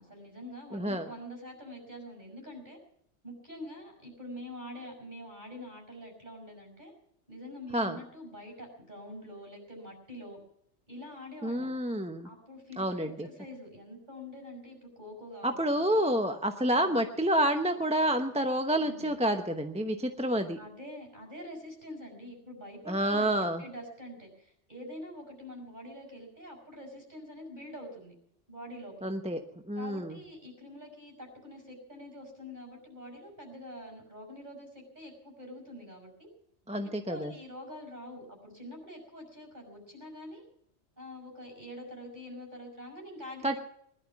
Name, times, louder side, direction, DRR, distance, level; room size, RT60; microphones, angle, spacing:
voice 1, 0.0-2.8 3.2-6.9 7.3-10.4 10.9-11.7 12.2-16.2 16.7-17.0 18.8-19.2 20.2-28.1 28.5-29.1 29.8-36.3 36.8-40.4 41.0-43.6, equal, 40° right, 2 dB, 6.0 m, -46 dB
voice 2, 0.7-1.1 7.7-8.0 11.4-12.3 12.8-13.3 15.4-20.6 22.9-23.6 29.0-29.4 29.7-30.2 36.7-37.3 43.4-43.6, right 1 dB, 5° right, 6 dB, 0.8 m, -29 dB
20.5 x 11.5 x 5.9 m, 0.70 s
omnidirectional pair, 1.2 m